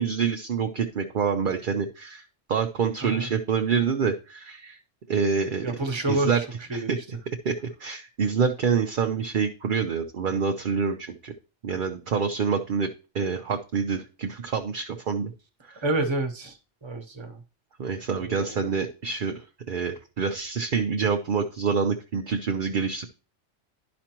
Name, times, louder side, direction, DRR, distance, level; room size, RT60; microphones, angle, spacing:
voice 1, 0.0-2.2 2.5-4.8 5.1-5.7 6.1-6.4 6.7-7.0 7.4-7.5 7.8-11.3 11.6-12.9 13.1-15.3 15.6-15.8 17.8-23.1, right 6 dB, 50° right, 4 dB, 0.7 m, -26 dB
voice 2, 5.6-6.4 6.7-7.0 15.8-16.5 16.8-17.4 18.2-18.7, right 2 dB, 25° right, 4 dB, 1.0 m, -28 dB
11.5 x 5.1 x 3.0 m, 0.34 s
omnidirectional pair, 1.3 m